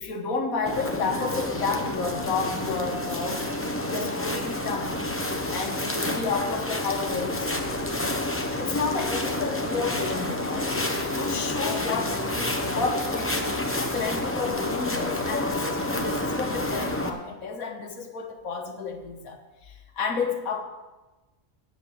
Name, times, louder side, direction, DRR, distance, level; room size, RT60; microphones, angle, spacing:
voice 1, 0.0-3.5 3.8-5.0 5.5-7.7 8.6-10.8 11.1-20.6, left 4 dB, 90° left, 5 dB, 1.7 m, -31 dB
sound 1, 0.7-17.1, left 1 dB, 10° left, 0.7 m, -29 dB
8.1 x 7.6 x 8.4 m, 1.1 s
omnidirectional pair, 1.4 m